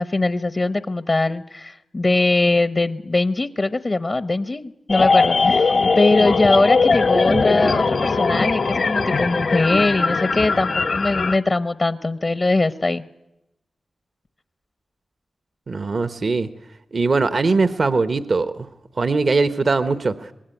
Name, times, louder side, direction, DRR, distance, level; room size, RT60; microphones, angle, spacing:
voice 1, 0.0-13.0, left 2 dB, 40° left, 13 dB, 0.9 m, -21 dB
sound 1, 4.9-11.4, left 4 dB, 65° left, 1.2 m, -19 dB
voice 2, 15.7-16.5 16.9-18.5 19.0-20.3, right 3 dB, 60° right, 11 dB, 1.0 m, -20 dB
25.0 x 20.0 x 9.1 m, 0.90 s
cardioid pair, 45°, 0 cm